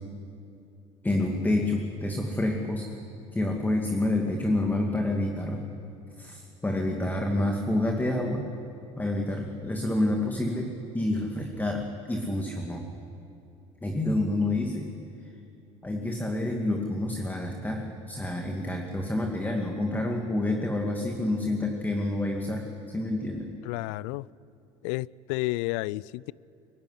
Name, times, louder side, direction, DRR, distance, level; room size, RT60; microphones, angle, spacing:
voice 1, 1.0-2.9 3.3-5.6 6.2-8.5 9.0-12.8 13.8-14.9 15.8-23.5, left 1 dB, 10° left, 2.4 m, -28 dB
voice 2, 23.6-24.3 24.8-26.3, left 20 dB, 75° left, 0.4 m, -31 dB
23.5 x 11.5 x 10.0 m
hypercardioid pair, 70°, 16 cm